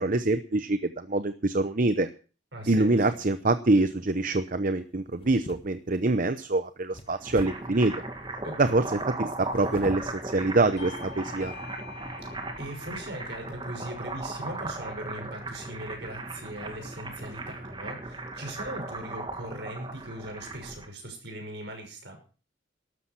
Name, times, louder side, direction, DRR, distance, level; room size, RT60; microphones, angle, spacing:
voice 1, 0.0-2.1 2.7-7.9 8.6-11.5, right 2 dB, 45° right, 11 dB, 0.8 m, -25 dB
voice 2, 2.5-3.0 8.4-8.9 12.2-12.3 12.6-22.2, right 1 dB, 65° right, 4 dB, 6.0 m, -40 dB
sound 1, 3.7-4.1 5.1-6.0 6.9-7.8 9.4-10.2 10.8-10.9 11.4-11.6, left 1 dB, 30° left, 1.5 m, -44 dB
sound 2, 7.0-20.9, right 2 dB, 25° right, 2.0 m, -37 dB
Bell / Doorbell, 10.8-15.8, left 5 dB, 70° left, 2.4 m, -48 dB
13.0 x 12.5 x 5.9 m, 0.37 s
head